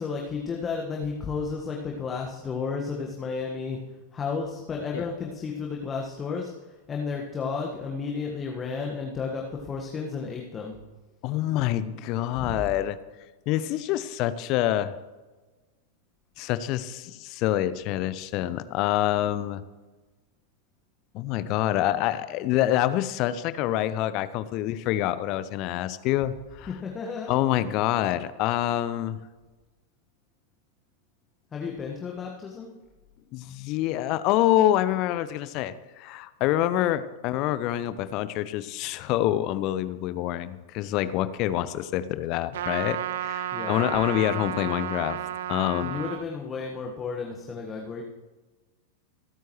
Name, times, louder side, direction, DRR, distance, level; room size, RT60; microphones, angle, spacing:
voice 1, 0.0-3.8 4.1-10.8 12.4-12.7 26.7-27.7 31.5-32.7 43.5-43.9 45.8-48.0, left 5 dB, 20° left, 0 dB, 1.5 m, -33 dB
voice 2, 11.2-13.0 13.5-14.9 16.4-19.6 21.1-26.7 27.3-29.2 33.3-45.2 45.5-46.0, left 13 dB, 40° left, 14 dB, 0.7 m, -26 dB
Trumpet, 42.5-46.2, right 11 dB, 60° right, 0.4 m, -32 dB
27.0 x 9.2 x 3.1 m, 1.2 s
figure-of-eight pair, 90°, 0 cm